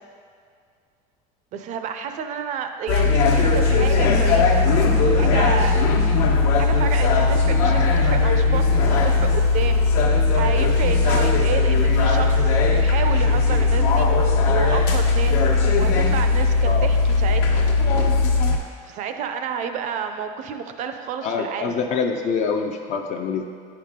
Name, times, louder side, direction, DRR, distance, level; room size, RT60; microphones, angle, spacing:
voice 1, 1.5-4.7 5.2-5.8 6.6-9.9 10.3-12.6 12.8-15.5 15.7-17.7 18.8-21.8, right 7 dB, 40° right, 7 dB, 0.5 m, -30 dB
sound 1, 2.9-18.6, left 4 dB, 75° left, 1.2 m, -18 dB
voice 2, 21.2-23.4, left 5 dB, 35° left, 3 dB, 0.5 m, -25 dB
9.2 x 5.8 x 3.6 m, 2.3 s
cardioid pair, 155°, 20 cm